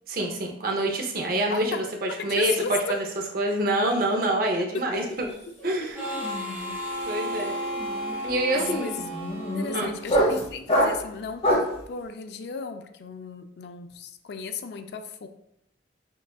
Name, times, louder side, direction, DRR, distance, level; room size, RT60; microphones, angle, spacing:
voice 1, 0.1-3.0 3.3-5.3 5.6-6.0 7.0-7.5 8.2-8.9 9.7-9.9, right 1 dB, 55° right, 2 dB, 0.6 m, -26 dB
voice 2, 2.4-2.9 5.1-5.2 5.8-5.9 8.5-9.0 9.5-15.3, left 5 dB, 65° left, 7 dB, 0.4 m, -35 dB
sound 1, 5.0-5.3 5.6-11.8, equal, 35° left, 0.9 m, -27 dB
Harmonica, 5.9-10.4, equal, 15° right, 0.7 m, -33 dB
5.9 x 2.4 x 2.3 m, 0.74 s
head